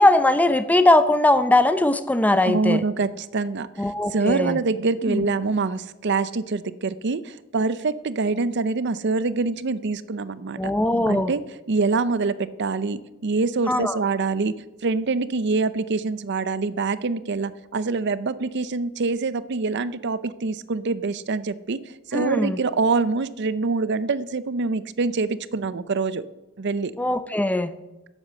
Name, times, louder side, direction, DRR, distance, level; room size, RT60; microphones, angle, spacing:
voice 1, 0.0-2.8 3.8-4.6 5.1-5.2 10.6-11.3 13.7-14.0 22.1-22.6 27.0-27.7, left 2 dB, 5° left, 11 dB, 0.6 m, -20 dB
voice 2, 2.4-10.7 11.1-11.4 11.7-21.8 22.1-26.3 26.6-26.9, right 4 dB, 55° right, 16 dB, 0.6 m, -25 dB
11.0 x 8.1 x 7.6 m, 1.0 s
head